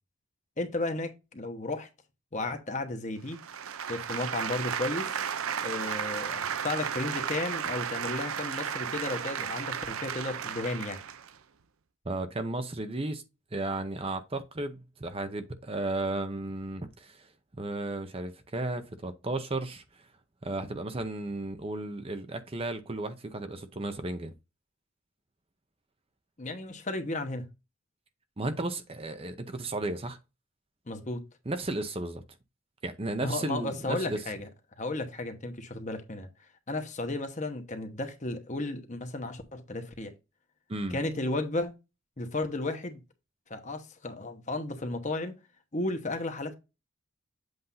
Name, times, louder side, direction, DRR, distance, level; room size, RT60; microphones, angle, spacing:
voice 1, 0.6-1.9 2.3-3.4 3.9-5.2 5.6-11.0 26.4-27.5 30.9-31.2 33.2-34.5 34.8-36.3 36.7-40.1 40.9-41.7 42.2-43.0 43.5-45.4 45.7-46.5, left 2 dB, 35° left, 1.0 m, -34 dB
sound 1, 3.3-11.3, right 8 dB, 85° right, 0.6 m, -34 dB
voice 2, 12.1-13.2 13.5-17.3 17.6-20.1 20.4-24.3 28.4-30.2 31.5-32.2 32.8-34.2 40.7-41.0, right 2 dB, 25° right, 0.7 m, -34 dB
7.9 x 2.6 x 5.5 m
head